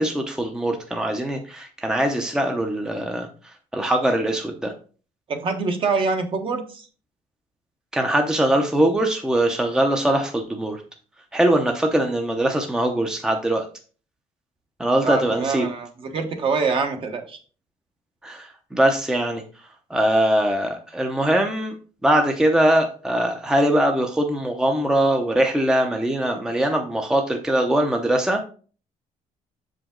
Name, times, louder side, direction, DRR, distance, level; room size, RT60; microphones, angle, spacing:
voice 1, 0.0-3.3 3.7-4.7 7.9-10.8 11.3-13.7 14.8-15.7 18.2-19.4 19.9-21.7 22.0-28.4, right 1 dB, 5° right, 4 dB, 0.7 m, -21 dB
voice 2, 5.3-6.9 15.0-17.4, right 4 dB, 40° right, 5 dB, 1.2 m, -25 dB
6.8 x 5.0 x 3.7 m, 0.39 s
cardioid pair, 145°, 13 cm